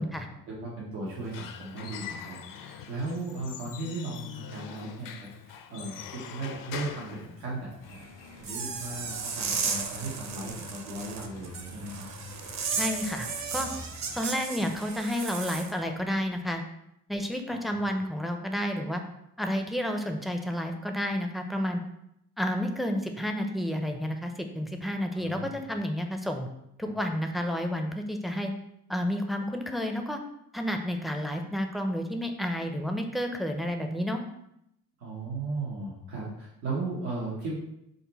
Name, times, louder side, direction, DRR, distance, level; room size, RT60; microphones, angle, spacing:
voice 1, 0.0-8.1 8.4-12.1 13.5-13.6 14.1-14.2 17.5-17.8 25.1-25.6 26.8-26.9 35.0-37.5, right 2 dB, 90° right, -6 dB, 1.0 m, -37 dB
Squeak / Wood, 1.1-8.0, left 8 dB, 50° left, 0.5 m, -43 dB
sound 1, 7.8-14.2, left 1 dB, 85° left, 1.4 m, -48 dB
sound 2, 8.4-15.7, right 5 dB, 40° right, 0.6 m, -34 dB
voice 2, 12.7-13.7 14.1-16.6 17.1-19.0 19.4-21.8 22.4-26.5 26.8-28.5 28.9-30.2 30.5-34.2, equal, ahead, 4 dB, 0.4 m, -30 dB
3.8 x 2.1 x 4.0 m, 0.80 s
supercardioid pair, 65°, 43 cm